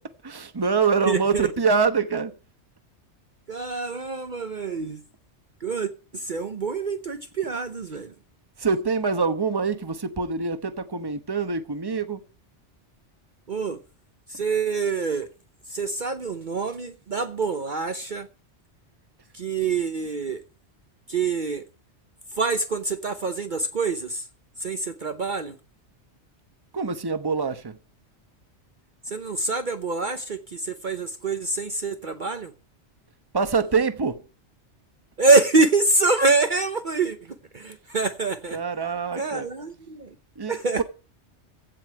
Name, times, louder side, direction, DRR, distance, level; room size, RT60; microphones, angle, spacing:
voice 1, 0.2-2.3 8.6-12.2 26.7-27.8 33.3-34.2 38.5-39.5 40.4-40.8, right 5 dB, 20° right, 1.0 m, -25 dB
voice 2, 1.0-1.5 3.5-5.0 5.6-8.1 13.5-13.8 14.3-15.3 15.7-18.3 19.3-20.4 21.1-21.6 22.3-24.3 24.6-25.6 29.1-32.5 35.2-38.6 39.2-40.1 40.5-40.8, right 3 dB, 45° right, 1.0 m, -25 dB
16.0 x 5.4 x 8.9 m
omnidirectional pair, 1.2 m